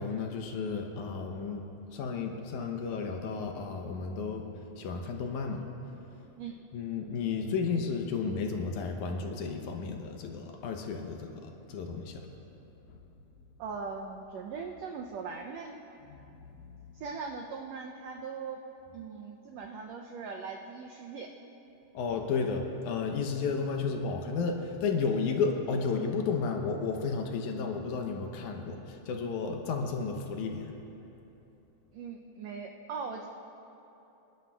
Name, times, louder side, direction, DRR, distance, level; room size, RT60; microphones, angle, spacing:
voice 1, 0.0-1.6 1.9-4.4 4.8-5.6 6.7-11.3 11.7-12.3 12.9-13.0 16.1-16.9 21.9-30.7, left 5 dB, 75° left, 3 dB, 2.2 m, -33 dB
voice 2, 13.6-15.8 16.9-18.6 18.9-21.3 31.9-33.3, right 5 dB, 85° right, 2 dB, 1.5 m, -40 dB
25.5 x 12.0 x 2.3 m, 3.0 s
omnidirectional pair, 3.8 m